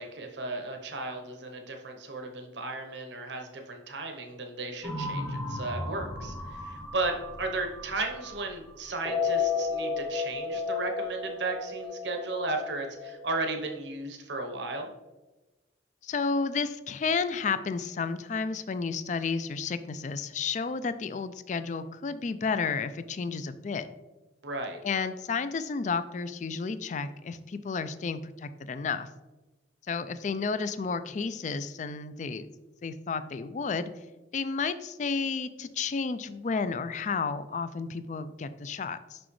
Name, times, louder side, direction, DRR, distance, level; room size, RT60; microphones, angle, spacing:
voice 1, 0.0-14.9 24.4-24.8, right 2 dB, 70° right, 4 dB, 1.0 m, -35 dB
sound 1, 4.8-8.5 8.9-13.2, left 4 dB, 15° left, 0.8 m, -33 dB
voice 2, 16.0-23.9 24.8-29.1 29.9-32.5 32.8-33.9 34.3-39.2, left 5 dB, 40° left, 13 dB, 0.3 m, -32 dB
6.1 x 5.8 x 3.1 m, 1.1 s
head